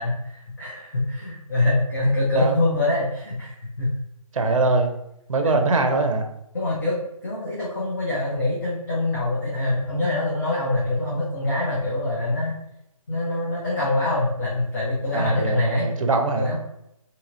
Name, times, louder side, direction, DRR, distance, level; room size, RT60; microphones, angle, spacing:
voice 1, 0.0-3.9 4.4-4.5 5.4-5.6 6.5-7.0 7.2-12.5 13.1-15.9 16.4-16.6, left 2 dB, 35° left, -6 dB, 0.7 m, -24 dB
voice 2, 4.3-4.9 5.3-6.3 15.1-16.5, right 3 dB, 65° right, 6 dB, 0.5 m, -22 dB
2.9 x 2.7 x 2.6 m, 0.81 s
hypercardioid pair, 170°, 18 cm